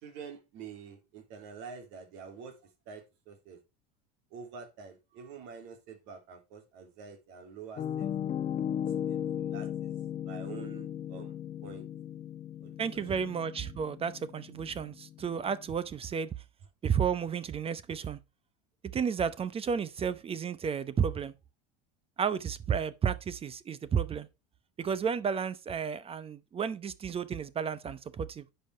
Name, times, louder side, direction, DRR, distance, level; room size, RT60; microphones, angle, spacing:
voice 1, 0.0-3.6 4.3-8.1 9.1-9.9 10.2-11.3 11.6-11.8 12.6-13.3, right 6 dB, 65° right, 3.4 m, -47 dB
Piano, 7.8-15.6, left 9 dB, 35° left, 1.1 m, -36 dB
voice 2, 12.8-16.3 16.8-18.2 18.9-21.3 22.2-24.3 24.8-28.4, right 7 dB, 30° right, 0.8 m, -32 dB
10.0 x 5.7 x 4.7 m
supercardioid pair, 95°, 20 cm